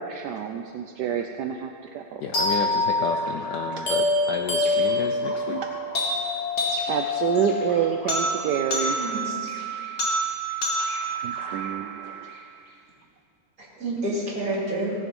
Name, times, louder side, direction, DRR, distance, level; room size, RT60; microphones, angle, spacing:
voice 1, 0.0-2.2 6.9-9.0 11.2-12.4, right 8 dB, 75° right, 5 dB, 0.9 m, -28 dB
voice 2, 2.2-5.6, left 6 dB, 70° left, 4 dB, 1.0 m, -31 dB
sound 1, 2.3-12.4, left 1 dB, 45° left, 2.6 m, -27 dB
voice 3, 9.0-9.5 13.6-15.0, right 1 dB, 40° right, -4 dB, 3.0 m, -29 dB
17.0 x 7.1 x 5.3 m, 2.4 s
omnidirectional pair, 2.4 m